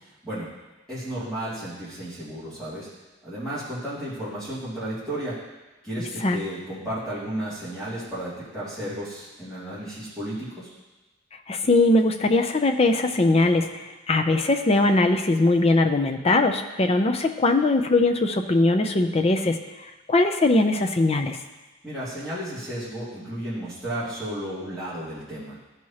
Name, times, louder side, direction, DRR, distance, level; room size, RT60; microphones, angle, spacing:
voice 1, 0.9-2.9 3.2-5.3 5.8-10.7 21.8-25.6, right 1 dB, 5° left, -13 dB, 2.3 m, -33 dB
voice 2, 11.5-13.7 14.1-19.6 20.1-21.4, left 2 dB, 30° left, 5 dB, 0.5 m, -20 dB
13.0 x 4.7 x 2.8 m, 1.1 s
head